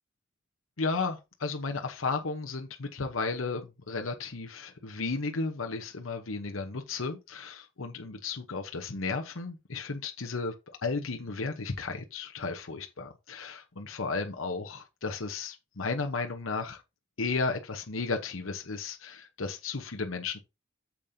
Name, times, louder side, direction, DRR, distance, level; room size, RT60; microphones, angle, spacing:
voice 1, 0.8-10.5 10.8-16.8 17.2-20.4, left 4 dB, 85° left, 1.0 m, -34 dB
8.6 x 7.5 x 2.8 m
head